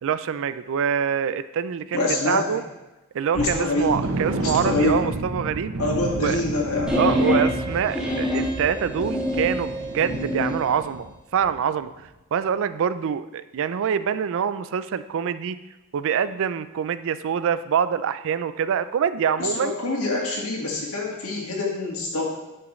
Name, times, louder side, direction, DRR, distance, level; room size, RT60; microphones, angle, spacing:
voice 1, 0.0-2.6 3.1-5.7 6.2-6.4 7.0-11.9 12.3-15.6 15.9-19.8, right 7 dB, 60° right, 14 dB, 0.4 m, -25 dB
voice 2, 1.9-2.5 3.3-3.9 4.4-5.0 5.8-7.0 19.4-22.3, left 2 dB, 70° left, -2 dB, 1.9 m, -25 dB
sound 1, 3.3-11.1 11.4-11.6 12.0-12.1, right 2 dB, 90° right, 0.9 m, -32 dB
sound 2, 6.9-10.6, left 1 dB, 5° right, 1.3 m, -25 dB
10.5 x 6.1 x 3.2 m, 1.0 s
head